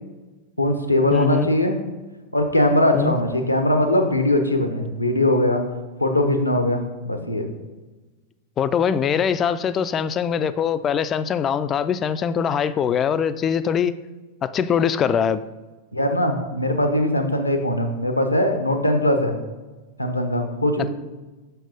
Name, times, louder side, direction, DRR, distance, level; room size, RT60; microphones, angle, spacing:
voice 1, 0.6-1.8 2.3-5.6 6.0-7.5 15.9-19.3 20.0-20.9, left 1 dB, 85° left, 6 dB, 0.8 m, -21 dB
voice 2, 1.1-1.5 2.9-3.2 8.6-13.9 14.4-15.4, left 7 dB, 25° left, 14 dB, 0.3 m, -22 dB
6.0 x 4.6 x 5.1 m, 1.2 s
figure-of-eight pair, 90°, 0 cm